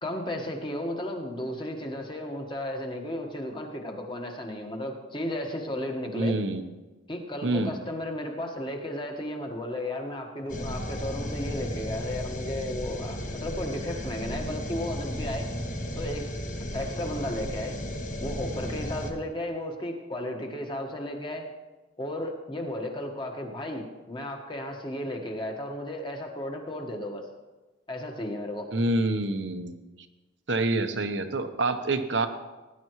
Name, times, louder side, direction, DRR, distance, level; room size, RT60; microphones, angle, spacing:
voice 1, 0.0-6.4 7.1-15.5 15.9-16.3 16.7-17.8 18.2-21.4 22.0-27.2 27.9-28.7, left 1 dB, 25° left, 2 dB, 1.4 m, -34 dB
voice 2, 6.1-6.6 7.4-7.7 28.7-29.7 30.5-32.3, right 2 dB, 65° right, 8 dB, 0.9 m, -26 dB
sound 1, 10.5-19.1, equal, 40° left, 1.3 m, -34 dB
18.5 x 10.5 x 3.1 m, 1.2 s
head